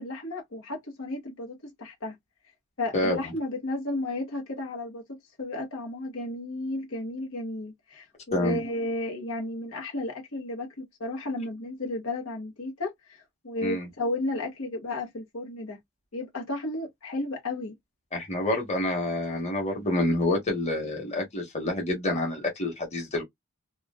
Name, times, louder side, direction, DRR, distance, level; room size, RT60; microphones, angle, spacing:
voice 1, 0.0-2.1 2.8-15.8 16.1-17.8, left 2 dB, 90° left, 1.0 m, -33 dB
voice 2, 18.1-23.2, left 1 dB, 30° left, 1.1 m, -27 dB
3.0 x 2.3 x 2.3 m
head